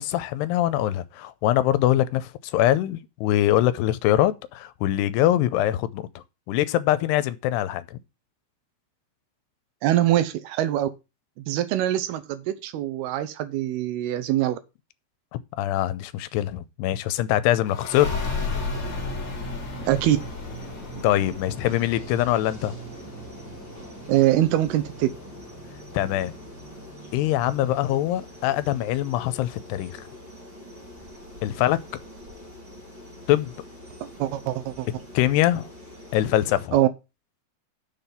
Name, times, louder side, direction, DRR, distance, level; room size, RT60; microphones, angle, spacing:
voice 1, 0.0-8.0 15.6-18.1 21.0-22.8 25.9-26.3 27.1-30.0 31.4-31.8 33.3-33.5 35.1-35.7 36.1-36.8, left 13 dB, 85° left, 2.7 m, -23 dB
voice 2, 9.8-10.9 11.4-14.6 19.9-20.2 24.1-25.1 34.2-34.9 36.7-36.9, right 13 dB, 80° right, 2.6 m, -23 dB
sound 1, 17.7-28.9, left 3 dB, 35° left, 2.4 m, -35 dB
sound 2, 19.9-36.7, left 1 dB, 30° right, 3.9 m, -45 dB
7.0 x 5.9 x 6.9 m
omnidirectional pair, 4.8 m